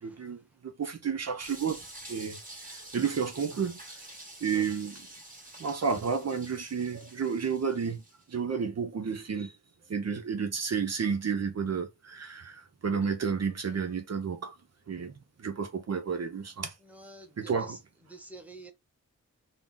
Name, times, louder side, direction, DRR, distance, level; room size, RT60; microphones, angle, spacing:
voice 1, 0.0-1.8 2.1-2.4 2.6-3.8 4.4-5.1 5.6-8.0 8.3-9.5 9.9-14.6 14.9-16.7 17.4-17.8, right 6 dB, 55° right, 0.7 m, -31 dB
sound 1, 1.4-8.2, right 2 dB, 25° right, 1.9 m, -48 dB
voice 2, 16.9-17.5 18.1-18.7, right 2 dB, 5° right, 1.2 m, -48 dB
3.8 x 2.0 x 3.7 m
cardioid pair, 60°, 31 cm